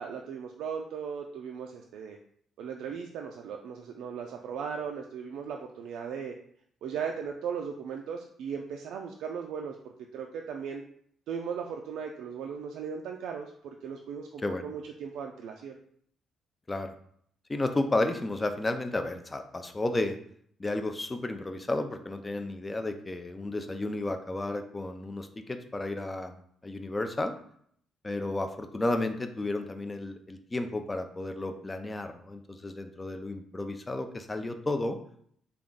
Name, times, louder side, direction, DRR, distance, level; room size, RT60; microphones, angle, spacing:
voice 1, 0.0-2.2 2.6-6.4 6.8-10.8 11.3-15.8, right 6 dB, 80° right, 2 dB, 0.3 m, -37 dB
voice 2, 17.5-20.2 20.6-26.4 26.6-27.3 28.0-35.0, left 2 dB, 20° left, 7 dB, 0.4 m, -32 dB
3.4 x 2.3 x 3.8 m, 0.64 s
cardioid pair, 90°, 0 cm